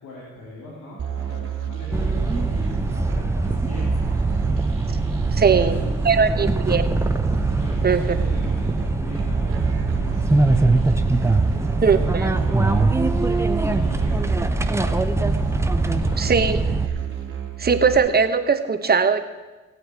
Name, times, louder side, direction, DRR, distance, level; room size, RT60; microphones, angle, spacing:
voice 1, 0.0-4.5 5.4-6.4 7.6-11.0 11.3-12.9 13.4-15.1 15.9-16.3, left 1 dB, 75° left, -5 dB, 3.5 m, -41 dB
Musical instrument, 1.0-18.0, right 9 dB, 45° right, 2.7 m, -30 dB
sound 1, 1.9-16.9, right 2 dB, 10° right, 0.7 m, -22 dB
voice 2, 5.3-5.8 6.0-6.8 7.8-8.0 11.8-12.3 16.2-16.6 17.6-19.2, right 5 dB, 30° right, 9 dB, 1.0 m, -19 dB
17.0 x 8.6 x 4.7 m, 1.2 s
cardioid pair, 90°, 30 cm